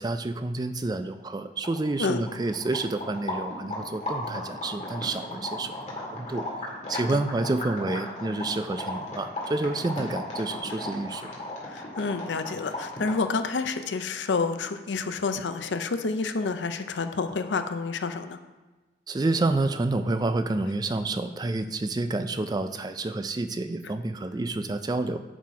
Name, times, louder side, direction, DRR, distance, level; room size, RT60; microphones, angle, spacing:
voice 1, 0.0-6.5 6.9-11.3 19.1-25.2, right 2 dB, 25° right, 10 dB, 0.3 m, -29 dB
sound 1, 1.3-1.4 1.6-13.3, left 1 dB, 40° left, 1.9 m, -36 dB
voice 2, 11.6-18.4, left 4 dB, 90° left, 9 dB, 0.6 m, -29 dB
11.0 x 4.1 x 4.7 m, 1.2 s
head